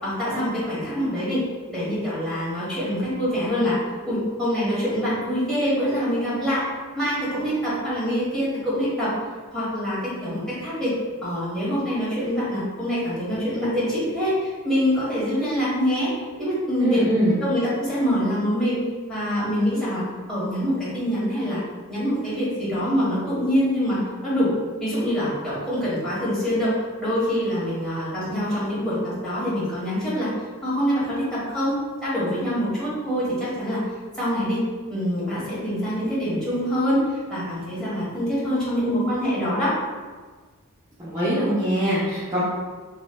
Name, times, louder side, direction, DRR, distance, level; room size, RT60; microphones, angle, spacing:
voice 1, 0.0-1.4 1.7-3.8 4.0-6.6 6.9-9.1 9.5-11.0 11.2-16.1 16.4-17.0 17.4-18.8 19.1-21.6 21.9-24.5 24.8-26.7 27.0-30.3 30.6-31.8 32.0-33.8 34.1-34.6 34.9-39.7, equal, 5° left, -11 dB, 1.3 m, -25 dB
voice 2, 16.8-17.3 41.0-42.4, equal, 15° right, -11 dB, 0.6 m, -22 dB
3.1 x 3.0 x 2.2 m, 1.4 s
head